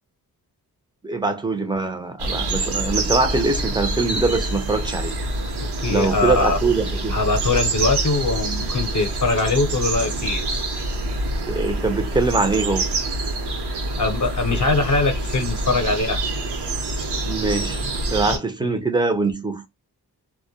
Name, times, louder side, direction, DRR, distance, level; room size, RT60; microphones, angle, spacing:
voice 1, 1.0-5.2 5.9-7.1 11.5-12.9 17.2-17.8 18.1-19.7, right 3 dB, 10° right, 0.4 m, -23 dB
sound 1, 2.2-18.4, right 2 dB, 75° right, 0.8 m, -26 dB
voice 2, 5.6-6.6 7.1-10.4 14.0-16.3, left 3 dB, 50° left, 0.6 m, -22 dB
2.2 x 2.1 x 2.6 m
wide cardioid pair, 120°, 40 cm